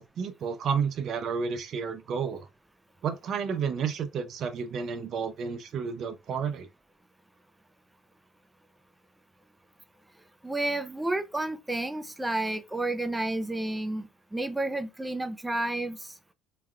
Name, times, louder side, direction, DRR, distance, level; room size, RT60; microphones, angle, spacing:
voice 1, 0.0-2.5 3.0-6.7, right 6 dB, 60° right, 0.6 m, -31 dB
voice 2, 10.4-16.2, right 2 dB, 10° right, 0.5 m, -31 dB
3.3 x 2.3 x 2.2 m
supercardioid pair, 80°, 0 cm